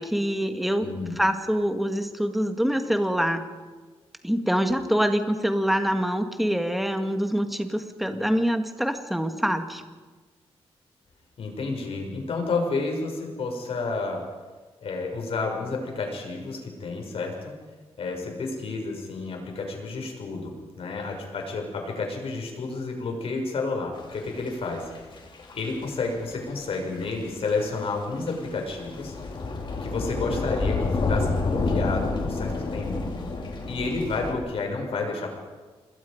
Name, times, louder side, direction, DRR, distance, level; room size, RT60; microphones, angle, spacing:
voice 1, 0.0-0.9 1.2-3.5 4.2-9.8, equal, ahead, 6 dB, 1.8 m, -25 dB
voice 2, 0.8-1.2 11.4-14.2 14.8-17.5 18.0-25.2 25.5-29.1 29.8-33.1 33.7-35.3, left 3 dB, 65° left, 2 dB, 6.2 m, -30 dB
sound 1, 24.1-24.6 24.9-25.8 26.3-26.4 26.6-26.7 27.0-27.1 27.5-27.9 28.3-34.3, left 3 dB, 50° left, 4.0 m, -29 dB
27.5 x 21.5 x 5.2 m, 1.4 s
wide cardioid pair, 130°, 10 cm